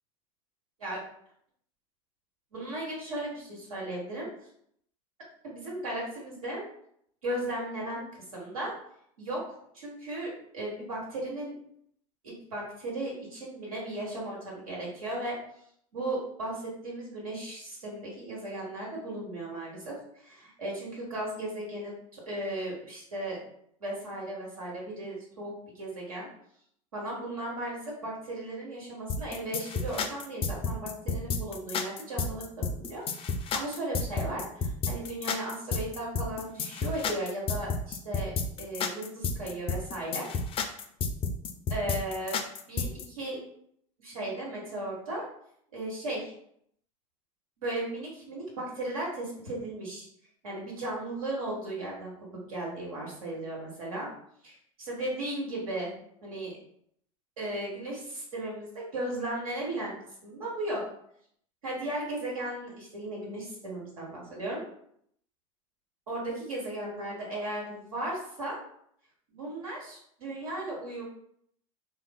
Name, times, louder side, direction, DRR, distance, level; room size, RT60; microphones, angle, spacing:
voice 1, 2.5-4.3 5.4-6.6 7.2-8.0 8.3-8.7 9.2-9.4 9.7-11.5 12.2-15.4 15.9-23.4 23.8-26.3 26.9-38.3 38.6-40.3 41.7-42.4 42.7-43.4 44.0-45.2 45.7-46.3 47.6-50.1 50.4-52.1 52.5-54.1 54.4-55.9 56.2-56.5 57.4-59.9 60.2-60.8 61.6-64.6 66.1-68.6 69.3-71.0, right 1 dB, 90° right, -4 dB, 1.2 m, -36 dB
sound 1, 29.1-43.0, left 4 dB, 30° left, 0.4 m, -31 dB
3.1 x 2.3 x 2.2 m, 0.69 s
hypercardioid pair, 85°, 18 cm